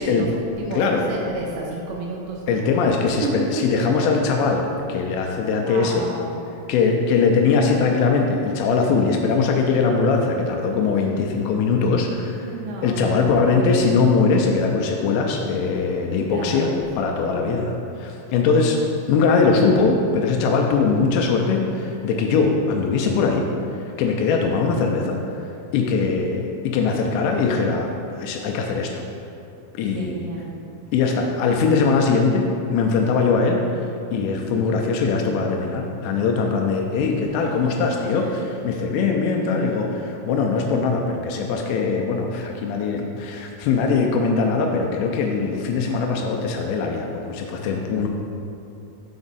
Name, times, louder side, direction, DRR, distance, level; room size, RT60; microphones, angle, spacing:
voice 1, 0.0-2.4 3.1-3.3 5.1-6.3 12.4-13.6 16.2-17.5 18.4-18.9 30.0-30.5 37.5-37.8 38.1-38.4, right 3 dB, 80° right, -2 dB, 2.8 m, -33 dB
voice 2, 0.7-1.1 2.5-6.1 6.7-12.5 12.8-16.7 17.0-18.8 19.1-25.5 25.7-27.9 28.2-28.9 29.7-30.2 30.9-33.9 34.1-48.1, left 4 dB, 85° left, 1 dB, 2.6 m, -21 dB
6.0 x 5.2 x 4.0 m, 2.7 s
omnidirectional pair, 5.3 m